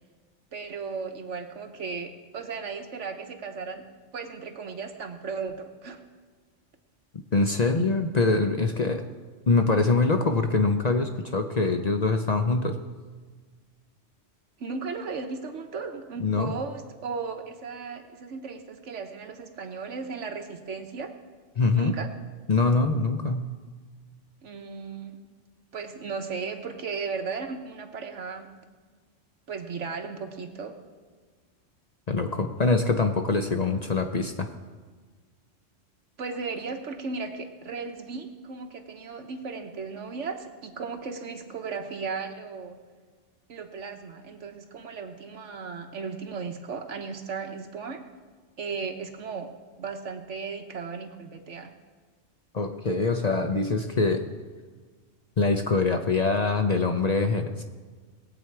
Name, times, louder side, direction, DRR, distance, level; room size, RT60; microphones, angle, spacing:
voice 1, 0.5-3.8 4.1-6.0 14.6-21.1 21.7-22.1 24.4-25.2 25.7-28.5 29.5-30.8 36.2-42.8 43.5-48.0 48.6-49.5 49.8-51.7, right 5 dB, 75° right, 5 dB, 1.4 m, -36 dB
voice 2, 7.3-9.0 9.5-12.8 16.2-16.5 21.6-22.0 22.5-23.5 32.1-34.5 52.5-54.3 55.4-57.6, left 3 dB, 40° left, 5 dB, 0.7 m, -24 dB
20.0 x 8.2 x 4.7 m, 1.5 s
omnidirectional pair, 1.3 m